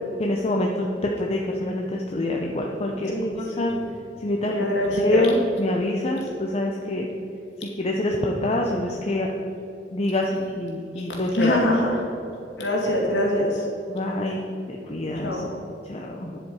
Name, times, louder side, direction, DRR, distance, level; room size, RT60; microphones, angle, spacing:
voice 1, 0.2-0.9 1.2-3.1 3.6-3.8 4.2-4.7 5.0-7.1 7.8-9.3 9.9-11.6 13.9-15.4 15.8-16.4, left 1 dB, 35° left, 0 dB, 0.7 m, -26 dB
voice 2, 3.1-3.8 4.4-5.3 10.3-10.4 11.0-11.1 11.3-12.0 12.6-13.7 15.1-15.5, left 1 dB, 75° left, -2 dB, 2.5 m, -24 dB
10.0 x 7.5 x 4.8 m, 2.9 s
head